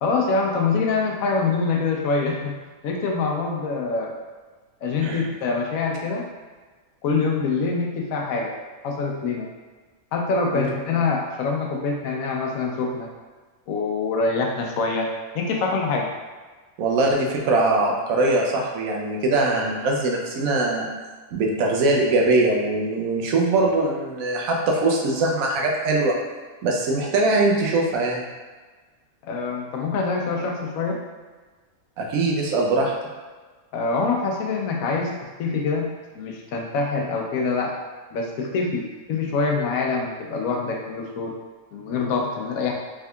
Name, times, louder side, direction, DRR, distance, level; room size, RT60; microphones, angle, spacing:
voice 1, 0.0-2.5 2.8-4.1 4.8-6.3 7.0-8.5 8.8-9.5 10.1-13.1 13.7-15.1 15.3-16.1 29.2-31.0 33.7-35.9 36.1-37.7 38.1-41.3 41.7-42.7, left 4 dB, 85° left, 1 dB, 1.0 m, -25 dB
voice 2, 16.8-20.9 21.3-26.2 26.6-28.3 32.0-32.9, right 2 dB, 80° right, 0 dB, 1.1 m, -22 dB
3.5 x 3.5 x 2.3 m, 1.4 s
omnidirectional pair, 1.4 m